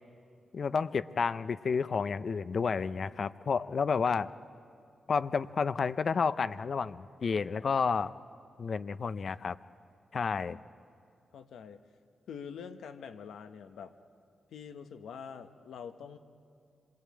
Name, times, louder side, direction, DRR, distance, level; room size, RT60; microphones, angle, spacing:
voice 1, 0.5-4.3 5.1-8.1 8.6-9.6 10.1-10.6, left 5 dB, 60° left, 14 dB, 0.6 m, -30 dB
voice 2, 11.3-11.8 12.3-14.0 14.5-16.2, left 7 dB, 85° left, 8 dB, 1.0 m, -45 dB
26.5 x 22.5 x 8.5 m, 2.4 s
cardioid pair, 60°, 0 cm